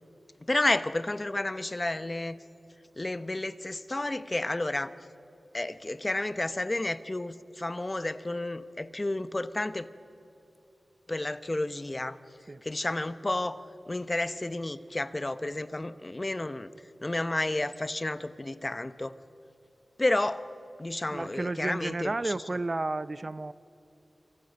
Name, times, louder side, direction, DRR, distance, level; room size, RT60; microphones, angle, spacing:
voice 1, 0.4-2.4 3.0-4.9 5.5-9.9 11.1-12.2 12.6-13.6 13.9-16.7 17.0-19.1 20.0-20.5 20.8-22.3, left 2 dB, 30° left, 12 dB, 0.9 m, -31 dB
voice 2, 21.1-23.5, right 2 dB, 40° right, 15 dB, 0.6 m, -32 dB
27.0 x 26.0 x 5.4 m, 2.8 s
wide cardioid pair, 60°, 0 cm